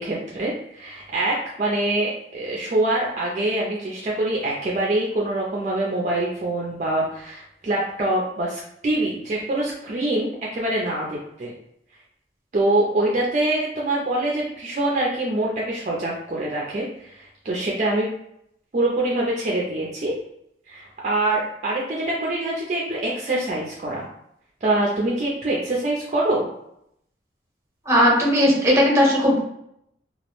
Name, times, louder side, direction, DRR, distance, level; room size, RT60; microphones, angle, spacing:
voice 1, 0.0-11.5 12.5-18.1 18.7-20.1 20.7-24.1 24.6-26.5, right 1 dB, 40° right, -3 dB, 0.4 m, -24 dB
voice 2, 27.9-29.4, equal, 15° right, -4 dB, 0.7 m, -17 dB
2.3 x 2.0 x 3.0 m, 0.75 s
head